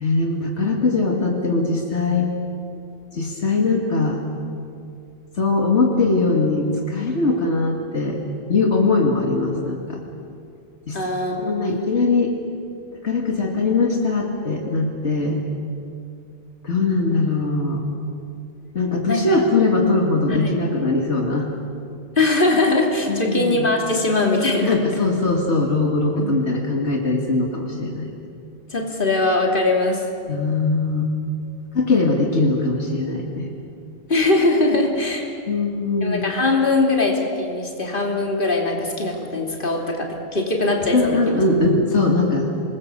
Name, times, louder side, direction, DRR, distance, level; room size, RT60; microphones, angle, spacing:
voice 1, 0.0-2.3 3.1-4.2 5.4-8.2 8.5-10.0 10.9-11.0 11.4-12.4 13.0-15.4 16.6-17.9 18.7-21.5 23.1-23.7 24.7-28.1 30.3-31.1 31.7-33.5 35.5-36.2 40.9-42.5, left 3 dB, 80° left, 0 dB, 2.5 m, -21 dB
voice 2, 10.9-11.8 19.1-19.4 20.3-20.6 22.2-25.1 26.2-26.3 28.7-30.0 34.1-35.3 36.0-40.1 40.3-41.4, left 2 dB, 50° left, 0 dB, 3.1 m, -21 dB
26.5 x 21.0 x 6.9 m, 2.5 s
omnidirectional pair, 1.2 m